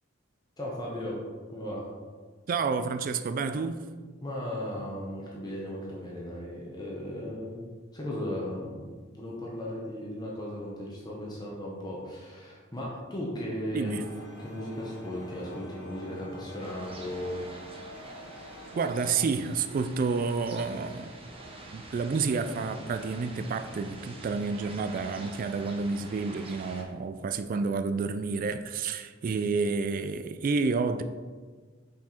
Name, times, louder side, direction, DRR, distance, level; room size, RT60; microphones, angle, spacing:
voice 1, 0.6-1.2 1.5-1.9 4.2-7.6 7.9-13.9 14.2-17.4, left 1 dB, 20° left, 0.9 m, -36 dB
voice 2, 2.5-3.9 13.7-14.0 18.7-21.1 21.7-31.0, right 4 dB, 45° right, 0.3 m, -29 dB
sound 1, 13.8-19.2, equal, 70° left, 1.3 m, -47 dB
sound 2, 16.6-26.8, right 2 dB, 30° right, 0.9 m, -46 dB
6.0 x 4.6 x 4.3 m
head